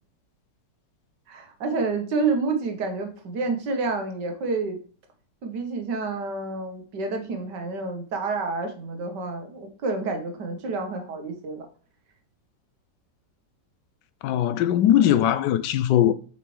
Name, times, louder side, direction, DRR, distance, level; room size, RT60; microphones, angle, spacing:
voice 1, 1.3-4.8 5.4-11.7, right 3 dB, 70° right, 1.8 m, -29 dB
voice 2, 14.2-16.1, left 11 dB, 80° left, 1.2 m, -20 dB
6.9 x 5.9 x 3.2 m
omnidirectional pair, 1.9 m